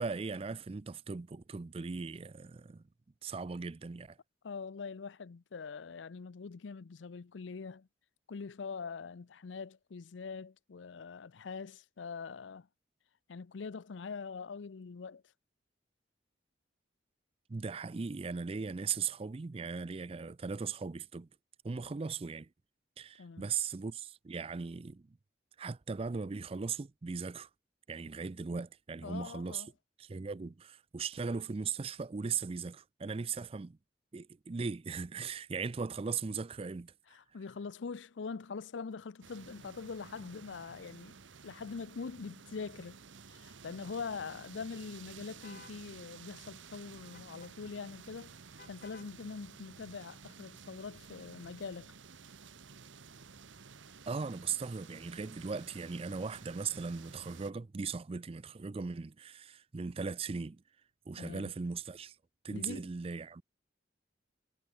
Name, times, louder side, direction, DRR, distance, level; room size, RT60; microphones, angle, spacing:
voice 1, 0.0-2.8 3.2-4.2 17.5-21.3 21.6-22.5 23.0-25.2 25.6-27.5 27.9-29.6 30.0-33.8 34.1-36.9 54.1-60.6 61.1-62.2 62.4-63.4, right 5 dB, 30° right, 0.4 m, -38 dB
voice 2, 4.4-7.9 8.3-12.7 13.3-15.2 23.2-23.5 29.0-29.7 37.1-41.2 41.4-43.0 43.3-48.3 48.7-51.9 61.2-61.5 62.5-62.9, left 5 dB, 80° left, 0.5 m, -43 dB
sound 1, 39.2-57.5, right 5 dB, 90° right, 1.2 m, -53 dB
sound 2, 45.4-45.8 47.1-47.5 48.6-49.1, left 4 dB, 55° left, 4.2 m, -55 dB
head